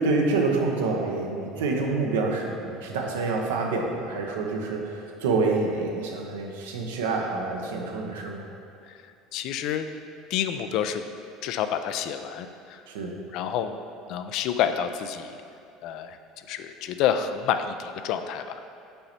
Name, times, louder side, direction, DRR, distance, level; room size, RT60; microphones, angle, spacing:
voice 1, 0.0-8.5 12.9-13.2, right 3 dB, 85° right, 1 dB, 0.7 m, -27 dB
voice 2, 9.3-9.9 10.3-11.0 11.4-13.8 14.1-15.4 15.8-16.2 16.5-18.7, left 9 dB, 65° left, 9 dB, 0.3 m, -29 dB
5.4 x 4.1 x 4.3 m, 2.5 s
hypercardioid pair, 80°, 0 cm